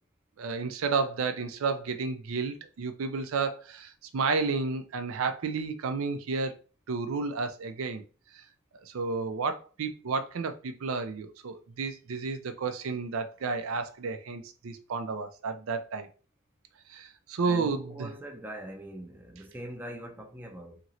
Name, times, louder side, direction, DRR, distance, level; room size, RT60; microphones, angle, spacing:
voice 1, 0.4-6.5 6.9-8.0 8.3-8.4 8.8-16.1 16.9-18.1, right 4 dB, 85° right, 0.4 m, -31 dB
voice 2, 17.4-20.8, right 1 dB, 10° right, 0.5 m, -42 dB
2.9 x 2.9 x 2.5 m
head